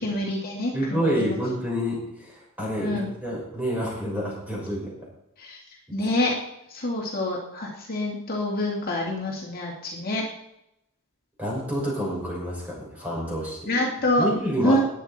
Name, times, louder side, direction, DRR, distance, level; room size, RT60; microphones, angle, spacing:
voice 1, 0.0-1.4 2.8-3.1 5.4-5.6 5.9-6.4 6.7-10.2 13.7-14.2 14.6-14.8, left 1 dB, 45° left, -3 dB, 2.4 m, -26 dB
voice 2, 0.7-4.9 11.4-13.6 14.2-14.8, equal, 5° right, -4 dB, 6.0 m, -28 dB
20.0 x 8.5 x 4.4 m, 0.82 s
head